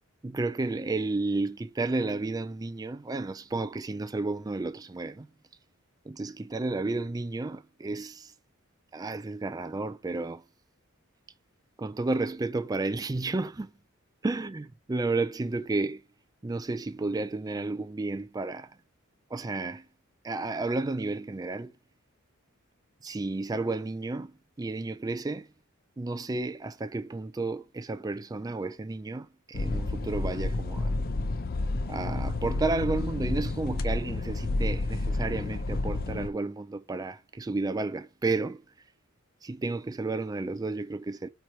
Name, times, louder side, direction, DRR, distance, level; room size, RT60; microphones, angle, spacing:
voice 1, 0.2-5.3 6.1-8.3 8.9-10.4 11.8-13.7 14.2-16.0 16.4-18.8 19.3-19.9 20.2-21.7 23.0-24.3 24.6-25.5 26.0-30.9 31.9-38.6 39.4-41.3, right 3 dB, 15° right, 0.3 m, -32 dB
sound 1, 29.5-36.3, left 2 dB, 45° left, 0.5 m, -30 dB
4.9 x 4.6 x 4.3 m
head